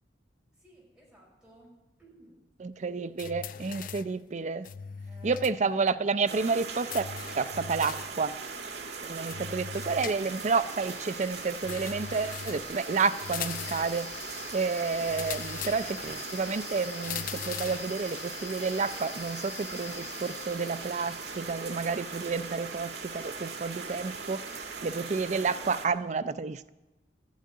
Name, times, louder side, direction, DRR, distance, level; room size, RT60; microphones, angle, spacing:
voice 1, 0.5-2.5 3.6-4.2 5.1-5.5, equal, 5° right, 5.3 m, -57 dB
voice 2, 2.6-4.7 5.2-7.1 7.4-8.4 9.0-14.1 14.5-26.7, right 4 dB, 40° right, 0.4 m, -30 dB
sound 1, 3.2-4.2 4.6-5.6 5.9-6.0 6.9-8.2 9.3-10.6 11.6-12.7 13.2-14.0 15.1-16.1 17.0-17.9, left 8 dB, 50° left, 0.4 m, -40 dB
sound 2, 6.3-25.9, right 5 dB, 65° right, 1.7 m, -40 dB
sound 3, 9.7-24.7, left 10 dB, 75° left, 0.9 m, -48 dB
13.0 x 10.5 x 9.5 m
head